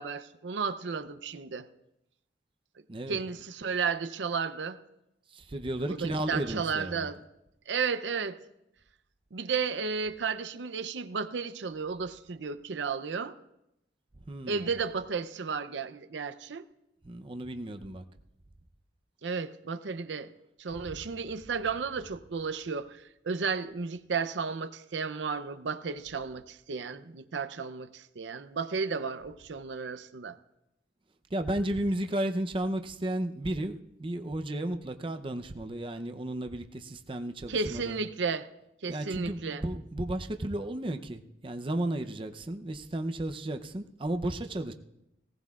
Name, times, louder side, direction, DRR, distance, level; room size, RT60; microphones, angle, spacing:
voice 1, 0.0-1.7 3.1-4.8 5.9-7.2 7.7-8.4 9.3-13.3 14.5-16.6 19.2-20.3 20.6-30.4 37.5-38.5 38.8-39.6, right 5 dB, 85° right, 0.6 m, -33 dB
voice 2, 2.9-3.2 5.5-7.1 14.3-14.7 17.1-18.0 20.9-21.0 31.3-38.0 38.9-44.7, right 1 dB, 30° right, 0.6 m, -33 dB
18.5 x 17.0 x 2.4 m
head